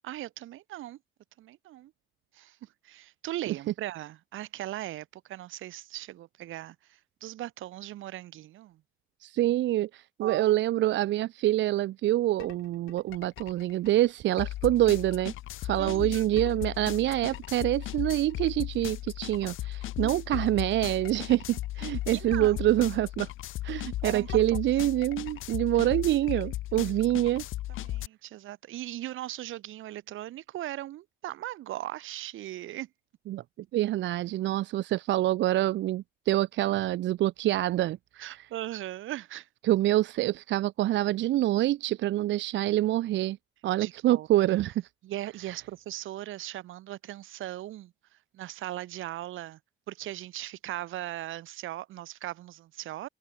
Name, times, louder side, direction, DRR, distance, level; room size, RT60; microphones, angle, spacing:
voice 1, 0.0-1.0 1.4-1.9 2.3-8.8 10.2-10.5 15.8-16.2 20.0-20.2 22.1-22.6 24.0-24.6 26.8-26.9 27.7-32.9 38.2-39.5 43.8-44.3 45.0-47.9 48.3-49.6 49.9-53.1, right 14 dB, 85° right, 4.5 m, -39 dB
voice 2, 9.2-15.3 15.6-23.3 23.6-27.4 33.3-33.4 33.7-38.5 39.6-43.4 43.6-44.9 45.5-45.6, right 14 dB, 65° right, 0.5 m, -26 dB
sound 1, 12.4-12.5 12.9-28.1, left 15 dB, 85° left, 2.9 m, -36 dB
cardioid pair, 90°, 20 cm